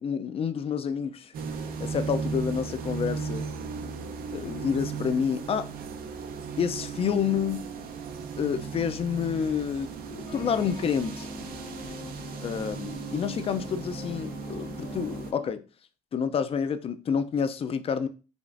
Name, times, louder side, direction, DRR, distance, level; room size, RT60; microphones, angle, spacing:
voice 1, 0.0-1.3 1.8-3.5 4.3-5.7 6.6-7.7 8.4-11.3 12.4-15.6 16.1-18.1, left 7 dB, 35° left, 0.4 m, -29 dB
sound 1, 1.3-15.3, right 5 dB, 60° right, 0.5 m, -36 dB
sound 2, 10.3-15.5, left 4 dB, 80° left, 0.7 m, -44 dB
5.1 x 2.4 x 2.5 m
cardioid pair, 110°, 17 cm